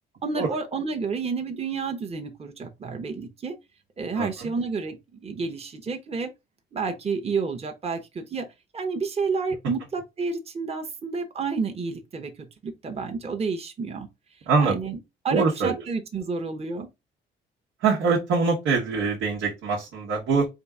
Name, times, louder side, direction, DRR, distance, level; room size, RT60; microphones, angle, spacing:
voice 1, 0.2-3.6 4.0-6.3 6.7-8.5 8.7-14.1 14.6-15.0 15.2-16.9, right 4 dB, 30° right, 0.9 m, -30 dB
voice 2, 4.2-4.5 14.5-14.7 15.3-15.7 17.8-20.5, right 4 dB, 90° right, 1.3 m, -23 dB
3.9 x 2.6 x 4.7 m
cardioid pair, 90°, 20 cm